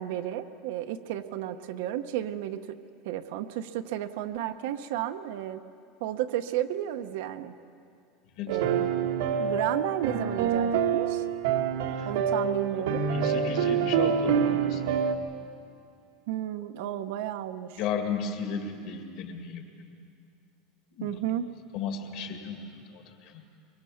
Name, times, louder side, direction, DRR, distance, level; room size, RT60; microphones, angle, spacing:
voice 1, 0.0-2.8 3.0-5.6 6.0-7.5 8.5-8.9 9.4-11.2 12.0-13.0 16.3-17.8 21.0-21.5, right 12 dB, 60° right, 8 dB, 0.9 m, -32 dB
sound 1, 8.5-15.2, right 7 dB, 80° right, 1.5 m, -26 dB
voice 2, 12.7-15.0 17.8-19.7 20.9-21.2 21.7-23.4, left 6 dB, 45° left, 4 dB, 2.2 m, -35 dB
24.0 x 23.5 x 5.8 m, 2.4 s
supercardioid pair, 180°, 0 cm